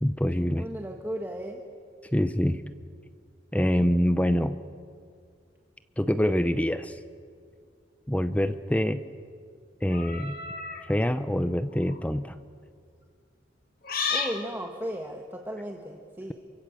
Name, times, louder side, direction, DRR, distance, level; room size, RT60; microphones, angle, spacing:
voice 1, 0.0-0.7 2.1-2.6 3.5-4.6 6.0-7.0 8.1-9.0 9.8-10.4 10.9-12.4, equal, 10° left, 11 dB, 0.7 m, -25 dB
voice 2, 0.6-1.6 3.8-3.9 14.1-16.3, equal, 10° right, 2 dB, 1.5 m, -35 dB
sound 1, 9.9-10.9 11.7-12.0 13.8-14.4, left 5 dB, 50° left, 2.5 m, -32 dB
28.0 x 24.5 x 7.7 m, 2.2 s
head